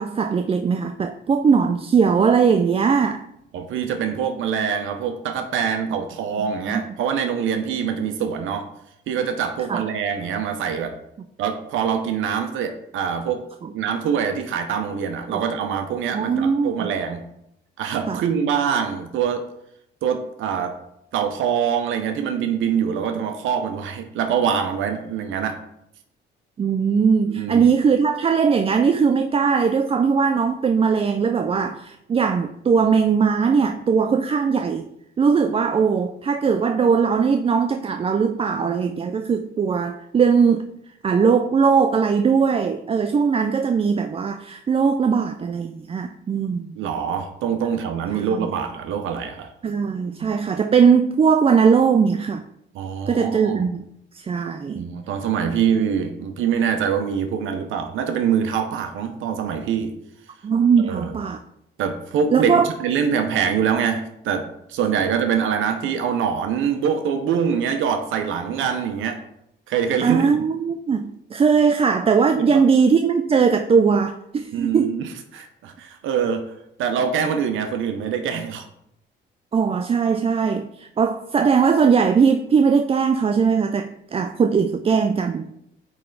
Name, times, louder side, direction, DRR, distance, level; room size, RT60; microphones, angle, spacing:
voice 1, 0.0-3.3 6.4-6.9 9.7-9.8 15.3-15.4 16.1-16.9 18.1-18.2 26.6-34.8 35.2-40.7 41.0-46.7 48.1-48.5 49.6-52.4 53.1-53.9 54.1-54.8 60.4-61.4 62.3-62.7 70.0-74.9 79.5-85.5, right 6 dB, 30° right, 7 dB, 0.4 m, -20 dB
voice 2, 3.5-8.6 9.1-11.0 11.4-13.4 13.7-17.2 17.8-19.5 20.0-20.7 21.1-25.6 27.3-27.7 46.8-49.5 50.2-50.3 52.7-53.7 54.7-59.9 60.8-61.1 61.8-69.2 69.7-70.4 72.3-72.7 74.5-76.5 76.8-78.7, right 7 dB, 80° right, 7 dB, 0.7 m, -24 dB
8.8 x 3.3 x 3.9 m, 0.78 s
cardioid pair, 90°, 20 cm